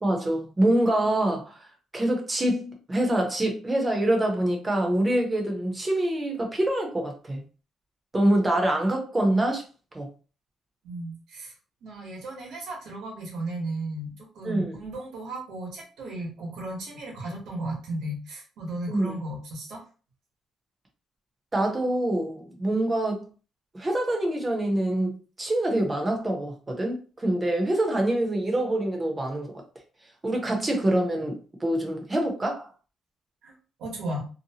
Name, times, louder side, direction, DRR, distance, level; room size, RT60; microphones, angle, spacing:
voice 1, 0.0-1.6 1.9-7.4 8.1-9.6 9.9-10.1 14.4-14.8 18.9-19.2 21.5-23.3 23.7-29.6 30.2-32.7, right 1 dB, 20° right, 0.7 m, -25 dB
voice 2, 10.8-11.5 11.8-19.8 33.4-33.5 33.8-34.2, right 1 dB, 85° right, 1.1 m, -35 dB
2.7 x 2.2 x 2.8 m
cardioid pair, 145°, 0 cm